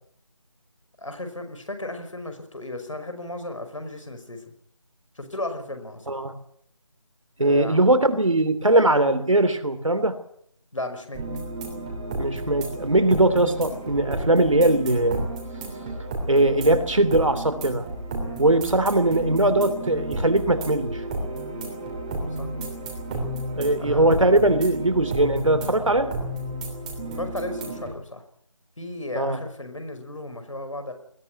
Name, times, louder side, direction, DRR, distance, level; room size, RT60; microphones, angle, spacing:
voice 1, 1.0-4.5 5.2-6.2 7.4-7.8 10.7-11.2 18.2-18.4 22.4-22.5 23.8-24.1 27.1-28.2 28.8-30.9, left 2 dB, 65° left, 8 dB, 5.4 m, -35 dB
voice 2, 7.4-10.2 12.2-15.2 16.3-17.9 18.4-21.0 23.5-26.1 29.1-29.4, right 1 dB, 70° right, 10 dB, 3.0 m, -20 dB
sound 1, 11.1-27.9, right 1 dB, 10° right, 3.0 m, -32 dB
21.0 x 14.5 x 9.4 m, 0.67 s
figure-of-eight pair, 165°, 17 cm